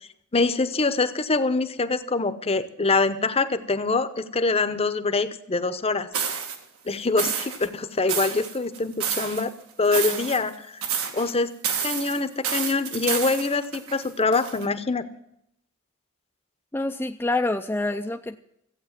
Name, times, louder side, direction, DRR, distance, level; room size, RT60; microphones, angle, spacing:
voice 1, 0.3-6.1 6.9-9.5 9.8-10.5 11.1-11.5 11.8-15.1, left 3 dB, 30° left, 12 dB, 0.9 m, -24 dB
sound 1, 6.1-6.6 7.2-7.7 8.1-9.4 9.8-10.5 10.8-11.3 11.6-14.6, right 7 dB, 85° right, 2.1 m, -29 dB
voice 2, 16.7-18.4, left 2 dB, 10° left, 3 dB, 0.5 m, -26 dB
15.0 x 8.7 x 7.3 m, 0.78 s
head